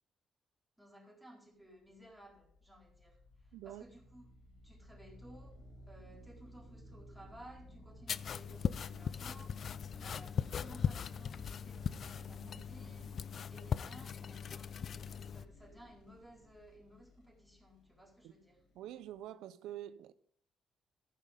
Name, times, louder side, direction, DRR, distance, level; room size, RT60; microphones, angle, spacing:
voice 1, 0.8-3.2 3.6-4.3 4.6-5.6 5.9-9.6 10.0-13.2 13.5-18.6, right 1 dB, ahead, 4.1 m, -57 dB
sound 1, 1.8-19.2, left 1 dB, 85° left, 4.2 m, -56 dB
voice 2, 3.5-3.8 18.2-18.3 18.7-20.1, right 12 dB, 90° right, 0.4 m, -46 dB
sound 2, 8.1-15.4, left 7 dB, 55° left, 0.4 m, -39 dB
14.5 x 5.8 x 5.1 m
cardioid pair, 90°, 0 cm